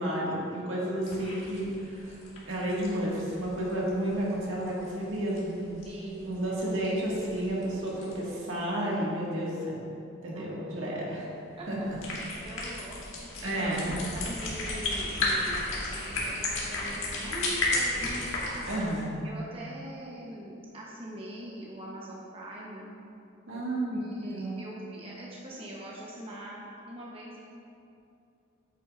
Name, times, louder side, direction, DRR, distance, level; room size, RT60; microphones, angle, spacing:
voice 1, 0.0-2.2 2.5-5.6 6.2-9.9 10.2-11.3 11.7-11.8 13.4-14.0 18.7-19.2 23.5-24.6, right 1 dB, 75° right, -5 dB, 1.9 m, -31 dB
sound 1, 1.0-8.3 11.7-19.0, left 2 dB, 80° left, 1.9 m, -35 dB
voice 2, 5.8-6.8 10.3-10.9 11.6-11.7 12.4-18.8 19.2-22.9 23.5-23.6 23.9-27.4, right 1 dB, 30° right, -5 dB, 0.9 m, -43 dB
8.9 x 8.5 x 2.5 m, 2.6 s
head